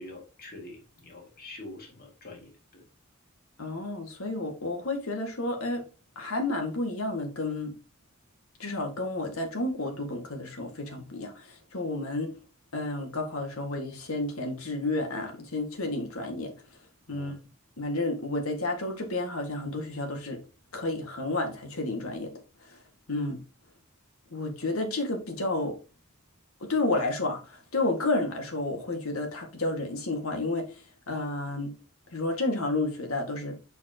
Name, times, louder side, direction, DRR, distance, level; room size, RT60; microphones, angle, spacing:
voice 1, 0.0-2.8 17.1-17.3, left 2 dB, 45° left, 2.5 m, -45 dB
voice 2, 3.6-5.8 6.2-7.8 8.6-12.4 12.7-16.5 17.1-17.3 17.8-20.4 20.7-22.8 23.1-23.4 24.3-25.8 26.6-31.7 32.1-33.6, left 2 dB, 80° left, 1.9 m, -31 dB
7.2 x 5.8 x 2.9 m
head